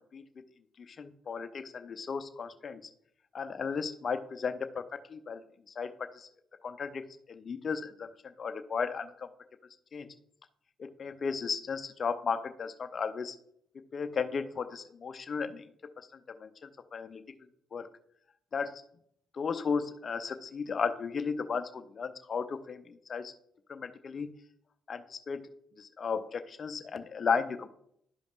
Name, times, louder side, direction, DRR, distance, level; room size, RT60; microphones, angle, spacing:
voice 1, 0.8-2.8 3.3-5.4 5.8-6.3 6.6-7.0 7.3-8.1 8.4-9.3 9.9-10.1 10.8-13.4 13.9-15.7 16.4-17.2 17.7-17.9 18.5-18.8 19.3-23.3 23.7-24.3 24.9-25.5 25.8-27.7, left 5 dB, 50° left, 9 dB, 0.6 m, -35 dB
11.5 x 5.2 x 2.4 m, 0.70 s
hypercardioid pair, 45°, 0 cm